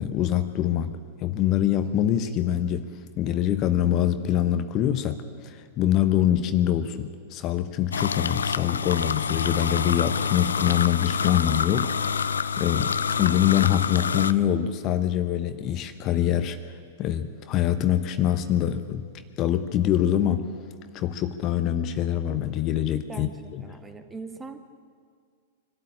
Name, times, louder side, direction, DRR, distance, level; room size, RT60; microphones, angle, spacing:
voice 1, 0.0-2.9 3.2-19.1 19.4-20.6 20.9-23.7, left 11 dB, 35° left, 9 dB, 1.0 m, -25 dB
sound 1, 7.9-14.3, left 6 dB, 75° left, 0.6 m, -27 dB
voice 2, 23.1-24.6, right 4 dB, 15° right, 7 dB, 1.6 m, -41 dB
24.0 x 12.5 x 8.7 m, 2.1 s
figure-of-eight pair, 100°, 0 cm